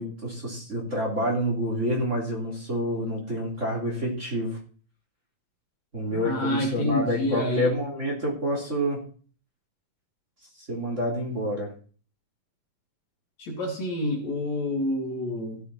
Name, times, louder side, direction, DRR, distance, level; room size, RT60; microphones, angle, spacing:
voice 1, 0.0-4.6 5.9-9.0 10.7-11.7, equal, 20° right, -2 dB, 3.9 m, -28 dB
voice 2, 6.1-7.7 13.4-15.6, left 1 dB, 55° left, 0 dB, 3.9 m, -28 dB
16.5 x 8.1 x 4.4 m, 0.41 s
omnidirectional pair, 3.8 m